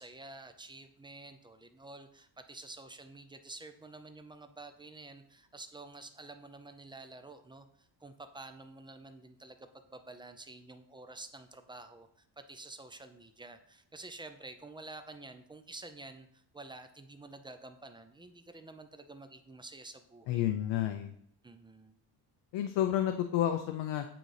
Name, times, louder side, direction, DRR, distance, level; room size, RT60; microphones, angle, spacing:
voice 1, 0.0-12.1 12.4-20.5 21.4-22.0, right 2 dB, 10° right, 8 dB, 0.3 m, -49 dB
voice 2, 20.3-21.1 22.5-24.1, left 11 dB, 90° left, 6 dB, 0.6 m, -30 dB
8.6 x 3.8 x 3.2 m, 0.69 s
cardioid pair, 115°, 43 cm